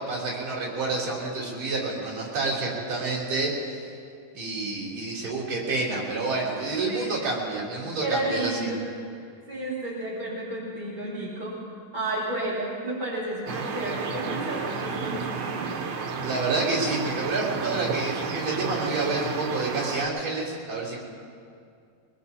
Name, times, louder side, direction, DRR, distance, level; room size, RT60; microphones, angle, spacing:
voice 1, 0.0-3.9 4.3-8.7 16.2-21.0, right 3 dB, 55° right, -7 dB, 4.3 m, -29 dB
voice 2, 8.0-8.9 9.1-11.6 11.9-15.8, right 1 dB, 15° right, -7 dB, 1.8 m, -32 dB
sound 1, 13.5-20.1, right 5 dB, 85° right, 1.1 m, -32 dB
23.5 x 20.5 x 2.8 m, 2.3 s
omnidirectional pair, 3.8 m